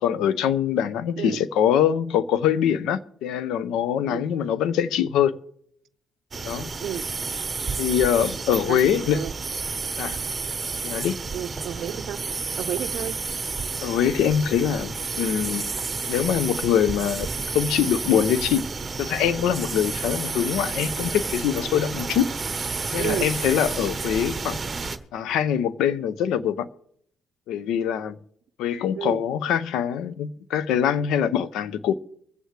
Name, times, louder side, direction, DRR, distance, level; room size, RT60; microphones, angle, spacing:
voice 1, 0.0-5.4 6.4-6.7 7.8-9.2 10.0-10.2 10.8-11.2 13.8-15.7 16.1-17.3 17.5-18.7 19.0-22.3 22.9-24.6 25.1-26.7 27.5-28.2 28.6-31.9, left 9 dB, 90° left, 0.6 m, -23 dB
sound 1, 6.3-25.0, right 4 dB, 30° right, 0.9 m, -31 dB
voice 2, 8.7-9.3 11.3-12.2 12.6-13.2 23.0-23.3 28.9-29.2, right 10 dB, 75° right, 0.5 m, -31 dB
24.0 x 8.1 x 3.2 m
cardioid pair, 90°, 0 cm